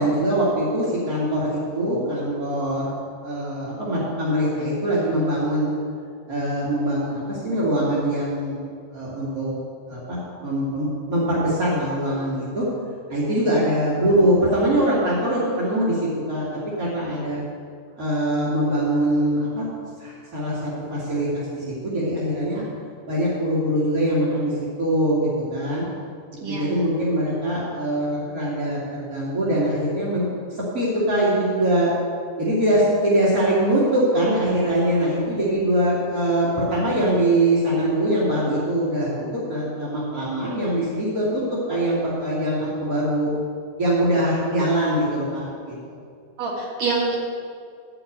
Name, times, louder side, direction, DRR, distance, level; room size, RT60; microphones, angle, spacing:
voice 1, 0.0-2.9 3.2-5.7 6.3-8.6 8.9-9.6 9.9-12.6 13.1-16.5 16.8-17.4 18.0-19.6 20.0-22.6 23.1-24.5 24.8-25.8 26.5-31.9 32.4-43.3 43.8-46.0, right 1 dB, 35° right, -8 dB, 1.4 m, -23 dB
voice 2, 26.4-26.8 46.4-47.2, right 4 dB, 50° right, -3 dB, 2.4 m, -26 dB
12.5 x 4.7 x 8.5 m, 2.2 s
omnidirectional pair, 4.7 m